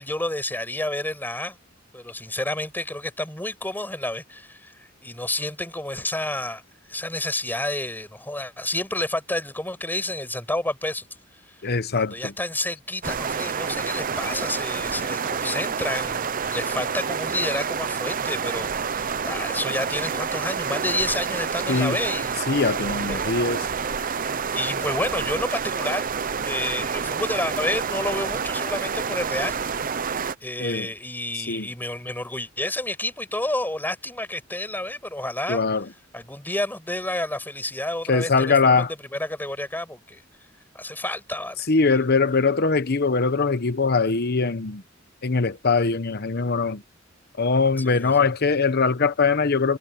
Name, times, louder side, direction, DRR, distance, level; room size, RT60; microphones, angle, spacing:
voice 1, 0.0-1.6 1.9-6.6 6.9-11.0 11.9-22.4 22.8-23.7 24.5-26.2 26.4-29.6 30.4-35.6 36.1-40.2 40.7-41.7 47.8-48.3, left 1 dB, 10° left, 6.9 m, -30 dB
voice 2, 11.6-12.3 21.7-22.0 22.5-23.7 30.6-30.9 31.4-31.7 35.5-35.8 38.1-38.9 41.7-44.8 45.2-46.8 47.4-49.8, left 4 dB, 55° left, 1.0 m, -22 dB
sound 1, 13.0-30.3, right 6 dB, 45° right, 0.8 m, -28 dB
head